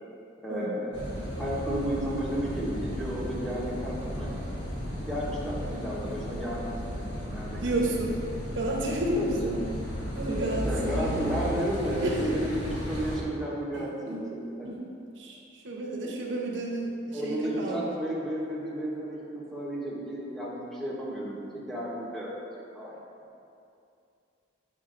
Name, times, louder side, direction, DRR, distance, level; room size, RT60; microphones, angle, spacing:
voice 1, 0.4-4.3 5.1-7.7 9.2-9.6 10.2-14.4 17.1-22.3 22.7-23.0, equal, ahead, -6 dB, 1.0 m, -33 dB
Car passing by / Idling / Accelerating revving vroom, 0.9-13.2, equal, 65° left, 1.2 m, -35 dB
voice 2, 7.6-8.2 8.6-9.7 10.1-11.1 12.0-12.4 13.7-14.3 14.6-14.9 15.2-17.9, right 1 dB, 65° right, -2 dB, 0.8 m, -31 dB
8.3 x 5.0 x 2.5 m, 2.6 s
head